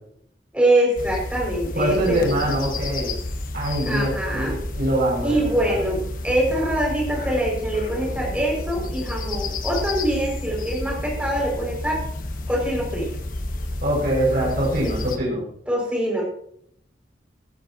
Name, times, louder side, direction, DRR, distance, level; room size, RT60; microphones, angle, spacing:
voice 1, 0.5-2.6 3.8-4.5 5.2-12.0 12.5-13.1 14.8-14.9 15.7-16.2, right 1 dB, 5° right, -2 dB, 5.9 m, -24 dB
sound 1, 1.0-15.2, left 2 dB, 50° left, 1.4 m, -31 dB
voice 2, 1.7-3.1 3.5-5.8 13.8-15.4, right 1 dB, 55° right, -4 dB, 6.4 m, -24 dB
17.0 x 12.0 x 2.9 m, 0.68 s
head